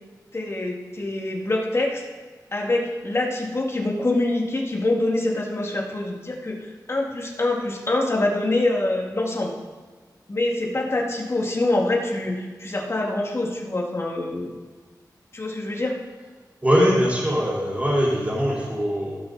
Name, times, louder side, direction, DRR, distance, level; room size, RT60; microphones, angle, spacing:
voice 1, 0.3-2.0 2.5-9.5 10.3-14.5 15.3-16.0, left 2 dB, 40° left, -1 dB, 2.0 m, -25 dB
voice 2, 16.6-19.2, equal, 20° right, -6 dB, 3.5 m, -21 dB
17.0 x 6.2 x 3.9 m, 1.5 s
wide cardioid pair, 110°, 7 cm